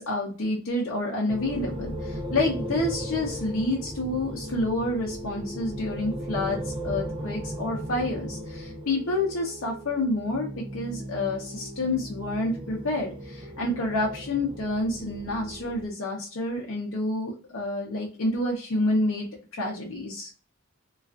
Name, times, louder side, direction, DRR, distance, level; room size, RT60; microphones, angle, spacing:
voice 1, 0.0-19.3 19.5-20.3, left 2 dB, 65° left, -2 dB, 0.6 m, -28 dB
sound 1, 1.3-15.9, equal, 25° right, 0.5 m, -36 dB
2.4 x 2.3 x 2.3 m, 0.37 s
head